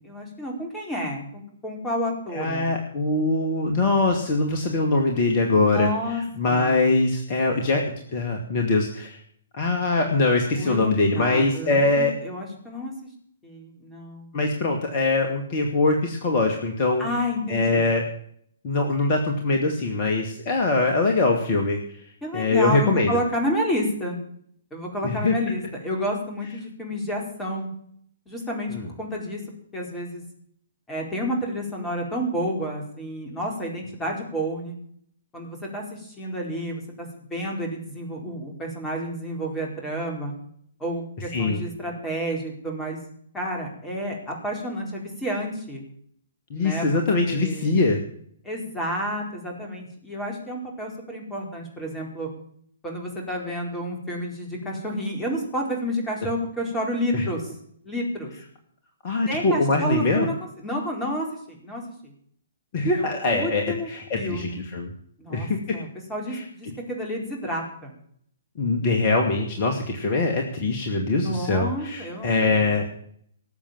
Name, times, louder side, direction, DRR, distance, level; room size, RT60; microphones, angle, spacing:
voice 1, 0.0-2.8 5.6-6.9 10.6-12.9 13.4-14.4 17.0-17.8 22.2-24.2 24.7-27.7 28.3-29.4 29.7-30.2 30.9-34.8 35.3-40.3 40.8-43.0 43.3-45.8 46.5-47.7 48.4-52.3 52.8-57.5 57.8-58.3 59.3-62.1 62.9-64.7 65.2-65.5 65.7-67.9 71.2-72.4, equal, 10° left, 0 dB, 4.4 m, -30 dB
voice 2, 2.3-5.9 6.4-9.2 9.5-12.1 14.3-17.1 17.5-18.0 18.6-21.8 22.3-23.2 25.0-25.3 28.7-28.9 41.3-41.6 46.5-48.0 57.1-57.2 59.0-60.3 62.7-64.9 65.3-65.6 66.3-66.4 68.6-72.9, left 3 dB, 35° left, 3 dB, 2.2 m, -23 dB
19.0 x 7.5 x 7.5 m, 0.63 s
figure-of-eight pair, 120°, 0 cm